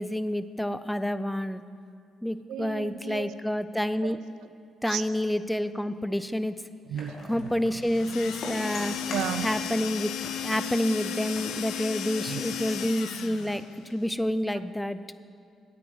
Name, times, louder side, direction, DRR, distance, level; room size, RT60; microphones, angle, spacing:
voice 1, 0.0-1.6 2.2-4.2 4.8-6.6 7.3-9.0 9.4-10.1 10.4-13.6 13.9-15.0, equal, 5° left, 13 dB, 0.5 m, -28 dB
voice 2, 2.5-3.3 4.0-4.5 4.9-5.0 6.9-7.8 9.1-9.5 12.3-12.4, right 10 dB, 85° right, 12 dB, 0.5 m, -35 dB
sound 1, 7.0-9.9 10.2-12.6, left 2 dB, 55° left, 2.2 m, -43 dB
sound 2, 7.8-13.7, left 9 dB, 80° left, 0.6 m, -34 dB
9.8 x 8.7 x 7.9 m, 2.3 s
cardioid pair, 90°, 0 cm